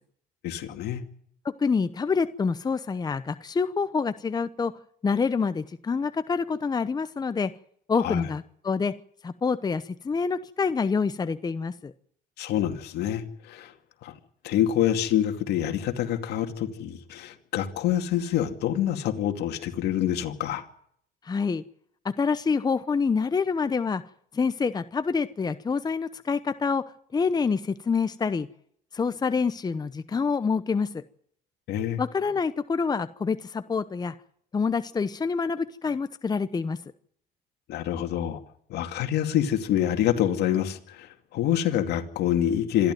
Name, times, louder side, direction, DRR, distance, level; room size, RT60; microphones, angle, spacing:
voice 1, 0.4-1.0 8.0-8.2 12.4-13.7 14.0-14.2 14.4-20.6 31.7-32.0 37.7-38.4 38.7-42.9, left 11 dB, 75° left, 6 dB, 2.5 m, -26 dB
voice 2, 1.4-4.7 5.0-7.5 7.9-8.9 9.2-11.9 21.2-21.6 22.0-24.0 24.3-26.8 27.1-28.5 28.9-31.0 32.0-34.1 34.5-36.8, left 5 dB, 25° left, 12 dB, 0.9 m, -27 dB
26.5 x 12.0 x 9.3 m, 0.67 s
cardioid pair, 110°, 17 cm